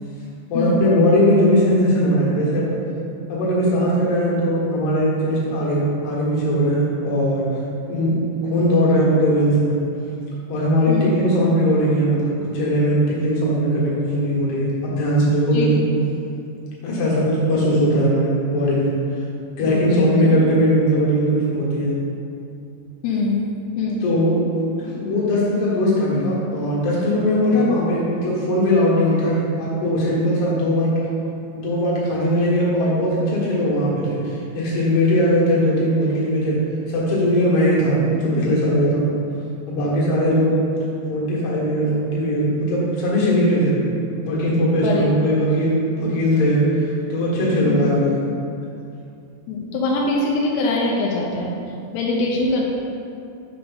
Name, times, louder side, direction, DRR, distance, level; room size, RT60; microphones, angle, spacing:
voice 1, 0.5-2.7 3.3-7.5 7.9-8.2 8.4-9.8 10.5-15.9 16.8-18.9 19.6-22.0 24.0-24.4 24.8-30.9 31.5-36.6 36.9-39.1 39.7-40.6 41.1-43.8 44.2-48.3, equal, 65° left, -6 dB, 3.1 m, -19 dB
voice 2, 10.9-11.2 15.5-15.8 19.7-20.4 23.0-23.4 23.8-24.1 44.8-45.1 47.6-47.9 49.5-51.5 51.9-52.6, left 2 dB, 85° left, -2 dB, 2.4 m, -23 dB
7.1 x 5.1 x 3.9 m, 2.5 s
omnidirectional pair, 5.4 m